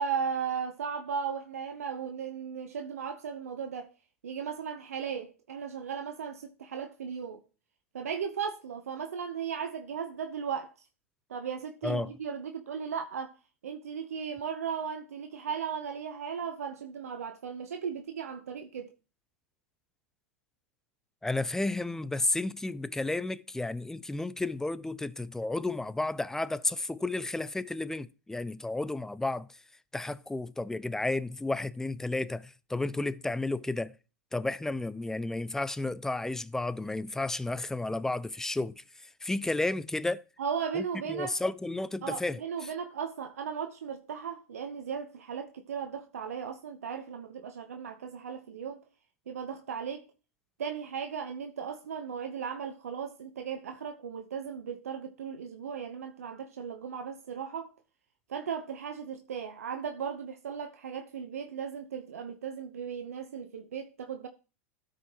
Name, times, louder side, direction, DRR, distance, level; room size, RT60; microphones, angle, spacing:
voice 1, 0.0-3.9 4.2-7.4 7.9-10.7 11.3-13.3 13.6-18.9 40.4-41.4 42.0-48.8 49.3-50.1 50.6-57.7 58.3-64.3, right 7 dB, 85° right, 0.8 m, -36 dB
voice 2, 21.2-29.5 29.9-33.9 34.3-38.8 39.2-40.2 40.7-42.7, left 2 dB, 5° left, 0.4 m, -32 dB
13.0 x 5.1 x 2.9 m
hypercardioid pair, 105°, 8 cm